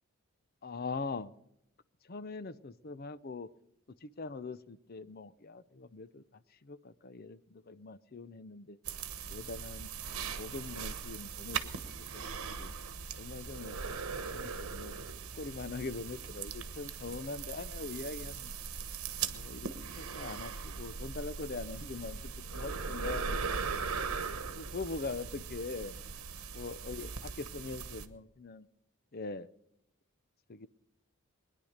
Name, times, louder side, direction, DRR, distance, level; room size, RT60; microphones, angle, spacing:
voice 1, 0.6-1.3 2.0-3.5 4.0-8.8 9.3-9.9 10.4-11.8 12.1-12.2 12.5-12.7 13.2-13.8 14.3-15.0 15.3-18.5 19.3-23.8 24.3-26.0 26.5-28.7 29.1-29.5 30.5-30.7, left 3 dB, 45° left, 15 dB, 0.6 m, -42 dB
sound 1, 8.9-28.1, right 5 dB, 80° right, 1.1 m, -40 dB
20.5 x 10.5 x 6.5 m, 0.78 s
head